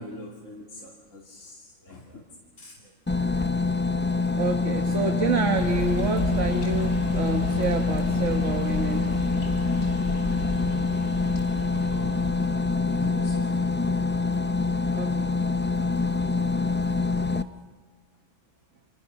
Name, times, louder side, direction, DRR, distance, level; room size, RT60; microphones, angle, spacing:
voice 1, 0.0-2.2 2.6-2.9 11.9-12.4 12.8-13.6, left 1 dB, 75° left, -3 dB, 3.1 m, -42 dB
sound 1, 3.1-17.4, left 3 dB, 20° left, 0.3 m, -25 dB
voice 2, 4.3-9.0 14.9-15.3, right 5 dB, 70° right, 5 dB, 1.6 m, -29 dB
sound 2, 5.5-12.8, left 1 dB, 50° left, 3.5 m, -33 dB
29.5 x 27.0 x 5.8 m, 1.5 s
omnidirectional pair, 1.3 m